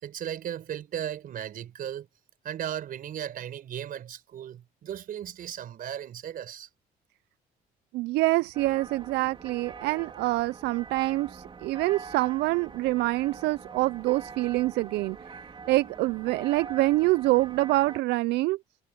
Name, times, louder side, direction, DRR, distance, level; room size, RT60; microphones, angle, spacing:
voice 1, 0.0-2.1 2.4-6.7, right 10 dB, 55° right, 5.1 m, -36 dB
voice 2, 7.9-15.2 15.7-18.6, right 19 dB, 80° right, 0.4 m, -26 dB
sound 1, 8.5-18.0, right 5 dB, 30° right, 3.2 m, -44 dB
cardioid pair, 110°, 17 cm